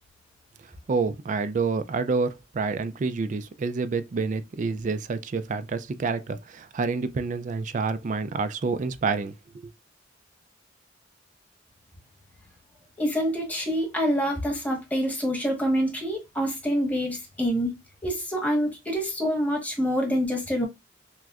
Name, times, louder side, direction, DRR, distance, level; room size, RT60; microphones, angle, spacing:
voice 1, 0.9-9.3, right 4 dB, 40° right, 0.3 m, -28 dB
voice 2, 13.0-17.8 18.0-20.7, equal, 10° left, 1.2 m, -26 dB
5.9 x 2.1 x 2.4 m
head